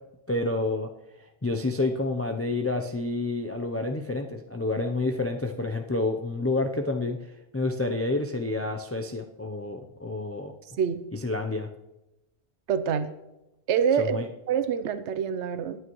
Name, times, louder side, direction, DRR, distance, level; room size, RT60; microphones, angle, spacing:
voice 1, 0.3-0.9 1.4-7.2 7.5-10.5 11.1-11.7 14.0-14.3, left 2 dB, 15° left, 3 dB, 0.5 m, -29 dB
voice 2, 12.7-13.1 13.7-15.8, right 7 dB, 85° right, 11 dB, 1.0 m, -26 dB
18.0 x 9.5 x 3.1 m, 0.95 s
omnidirectional pair, 1.1 m